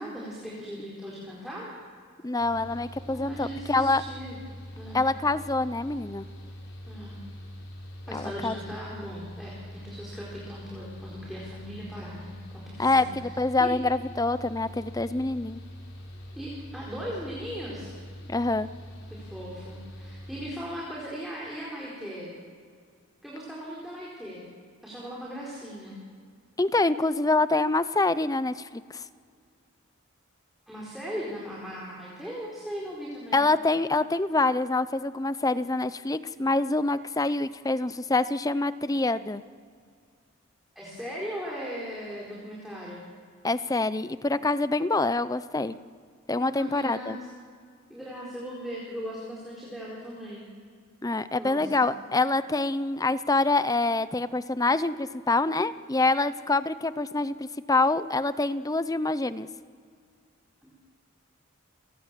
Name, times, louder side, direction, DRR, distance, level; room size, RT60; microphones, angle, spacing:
voice 1, 0.0-1.7 3.1-4.4 4.8-5.0 6.9-7.2 8.1-13.3 13.6-13.7 16.4-17.9 19.1-22.4 23.2-24.4 24.8-26.0 30.7-33.4 40.8-43.0 46.4-47.2 47.9-50.4 51.3-51.8 60.6-60.7, equal, ahead, -5 dB, 4.2 m, -38 dB
voice 2, 2.2-4.0 4.9-6.3 8.1-8.8 12.8-15.6 18.3-18.7 26.6-29.0 33.3-39.4 43.4-45.8 46.3-47.2 51.0-59.5, left 2 dB, 15° left, 14 dB, 0.6 m, -26 dB
Mechanical fan, 2.4-20.5, equal, 90° left, 5.2 m, -43 dB
29.5 x 18.0 x 7.5 m, 2.1 s
head